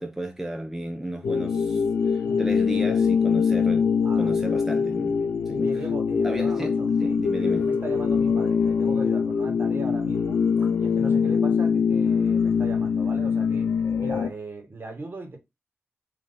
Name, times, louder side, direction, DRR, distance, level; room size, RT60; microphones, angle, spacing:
voice 1, 0.0-5.2 5.5-5.8 6.2-6.7 7.0-7.7, right 1 dB, 5° right, 0.8 m, -34 dB
sound 1, 1.2-14.3, left 6 dB, 90° left, 0.5 m, -23 dB
voice 2, 5.6-13.7 14.0-15.4, right 3 dB, 50° right, 1.4 m, -39 dB
3.9 x 2.9 x 3.9 m
cardioid pair, 65°, 5 cm